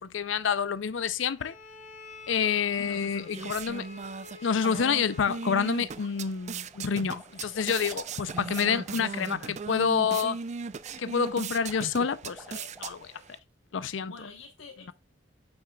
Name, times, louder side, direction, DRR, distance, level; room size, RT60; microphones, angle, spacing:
voice 1, 0.0-1.6 2.3-3.9 4.4-10.4 11.0-13.1 13.7-14.1, left 6 dB, 70° left, 0.5 m, -28 dB
Bowed string instrument, 1.4-6.0, left 4 dB, 40° left, 2.2 m, -49 dB
voice 2, 2.8-3.6 7.0-7.1 7.9-8.0 8.5-10.1 14.1-14.9, left 4 dB, 85° left, 1.2 m, -46 dB
sound 1, 2.9-13.4, right 5 dB, 35° right, 0.4 m, -39 dB
sound 2, 5.5-6.3 6.7-13.4, right 1 dB, 10° right, 1.5 m, -52 dB
8.8 x 5.6 x 2.3 m
head